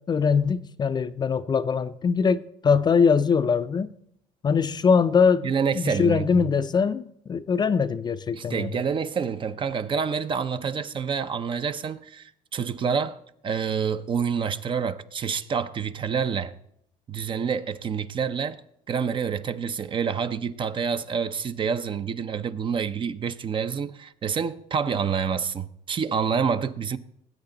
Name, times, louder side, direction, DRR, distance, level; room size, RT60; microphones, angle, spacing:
voice 1, 0.0-3.9 4.4-8.8, left 6 dB, 30° left, 0.5 m, -22 dB
voice 2, 5.4-6.5 8.3-16.5 17.1-18.6 18.9-27.0, right 6 dB, 35° right, 0.6 m, -28 dB
19.0 x 8.1 x 3.9 m
supercardioid pair, 105°, 15 cm